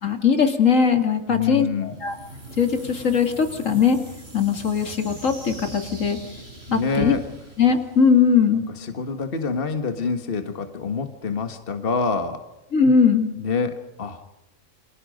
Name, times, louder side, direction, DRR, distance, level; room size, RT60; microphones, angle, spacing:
voice 1, 0.0-2.2 2.6-4.0 4.3-6.2 6.7-7.1 7.6-8.7 12.7-13.3, left 6 dB, 75° left, 6 dB, 2.8 m, -20 dB
voice 2, 1.3-1.9 6.7-7.2 8.5-12.4 13.4-14.2, left 4 dB, 45° left, 7 dB, 1.7 m, -26 dB
sound 1, 1.8-8.7, right 1 dB, 50° right, 4.9 m, -42 dB
29.0 x 26.0 x 5.3 m, 0.92 s
omnidirectional pair, 1.4 m